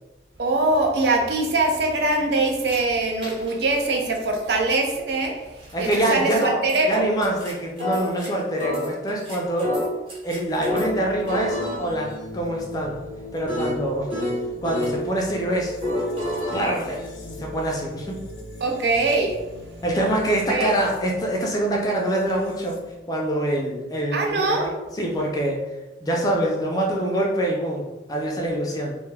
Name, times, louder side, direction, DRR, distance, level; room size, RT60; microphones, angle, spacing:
voice 1, 0.4-5.3 5.8-7.0 18.6-19.3 20.5-20.7 24.1-24.7, right 2 dB, 70° right, 2 dB, 0.4 m, -22 dB
sound 1, 2.7-2.8 3.2-3.7 4.3-4.4 5.6-6.0 6.4-6.5 6.7-6.8 7.2-8.3 8.6-10.9 11.3-15.0 15.8-17.6, left 1 dB, 30° right, 0.7 m, -29 dB
voice 2, 5.7-6.6 6.9-9.7 10.2-13.0 13.3-14.2 14.6-15.8 16.5-18.2 19.8-22.8 23.1-24.7 25.0-25.6 26.0-29.0, right 1 dB, 20° left, -1 dB, 0.4 m, -25 dB
sound 2, 10.7-23.0, left 2 dB, 80° left, 0.4 m, -40 dB
2.2 x 2.1 x 3.2 m, 1.1 s
head